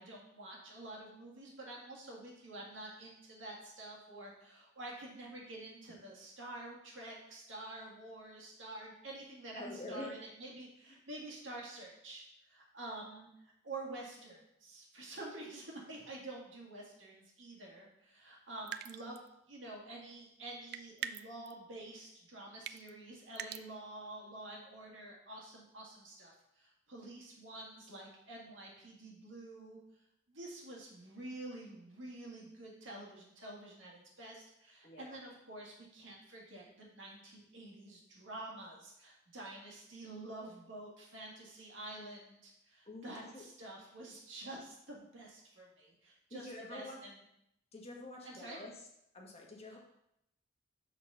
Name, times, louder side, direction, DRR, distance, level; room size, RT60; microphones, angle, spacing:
voice 1, 0.0-13.3 13.6-19.2 19.5-29.8 30.3-47.2 48.2-48.6 49.7-49.8, right 2 dB, 80° right, -2 dB, 2.0 m, -48 dB
voice 2, 9.6-10.1 34.8-35.2 42.9-43.4 46.3-47.0 47.7-48.7 49.1-49.8, left 1 dB, 35° left, -1 dB, 1.3 m, -47 dB
sound 1, 18.7-19.3 20.7-21.5 22.6-22.9 23.3-23.6, right 10 dB, 55° right, 0.3 m, -42 dB
6.1 x 4.2 x 5.7 m, 0.79 s
head